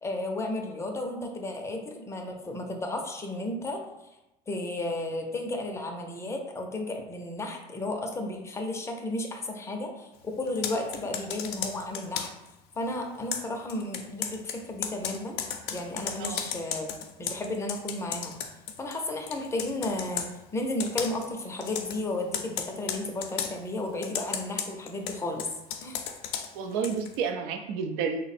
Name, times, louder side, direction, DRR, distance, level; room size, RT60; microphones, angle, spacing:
voice 1, 0.0-3.8 4.5-12.3 12.8-15.4 15.7-16.9 17.2-18.3 18.8-25.5 25.8-26.0, left 2 dB, 15° left, 3 dB, 0.5 m, -33 dB
Computer keyboard, 10.5-12.5 13.3-19.0 19.3-20.3 20.8-21.3 21.6-22.0 22.3-23.5 24.0-27.2, left 8 dB, 80° left, 0.5 m, -35 dB
voice 2, 26.5-28.2, right 6 dB, 75° right, 6 dB, 0.4 m, -30 dB
3.3 x 2.0 x 4.1 m, 0.94 s
cardioid pair, 130°, 18 cm